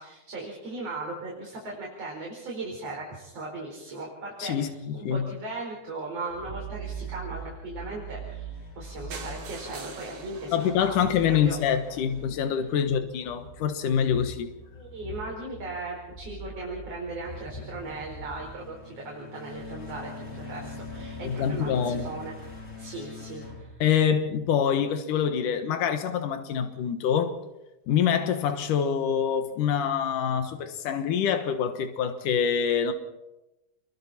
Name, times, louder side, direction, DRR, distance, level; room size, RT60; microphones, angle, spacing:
voice 1, 0.0-4.7 4.9-11.6 14.7-22.3 22.8-23.7, right 2 dB, 50° right, 5.6 m, -38 dB
voice 2, 4.4-5.3 10.5-14.5 21.2-22.1 23.8-27.4 27.9-32.9, left 8 dB, 85° left, 3.0 m, -25 dB
sound 1, 6.3-24.4, right 1 dB, 20° left, 4.4 m, -42 dB
sound 2, 9.1-13.0 13.6-13.7 14.0-14.1 14.4-14.5 14.6-14.7, right 4 dB, 85° right, 4.0 m, -45 dB
29.5 x 23.0 x 4.4 m
omnidirectional pair, 3.6 m